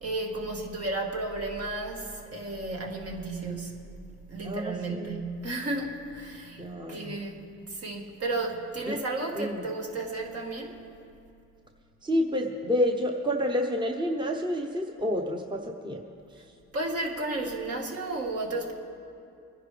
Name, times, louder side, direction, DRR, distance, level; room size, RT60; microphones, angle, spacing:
voice 1, 0.0-3.9 4.3-6.6 6.9-10.8 16.7-18.7, right 2 dB, 50° right, 1 dB, 1.9 m, -33 dB
voice 2, 4.4-5.2 6.6-7.1 8.9-9.0 9.3-9.6 12.0-16.0 16.3-16.4, equal, 15° right, 2 dB, 1.0 m, -29 dB
22.5 x 10.5 x 3.4 m, 2.6 s
cardioid pair, 90°, 30 cm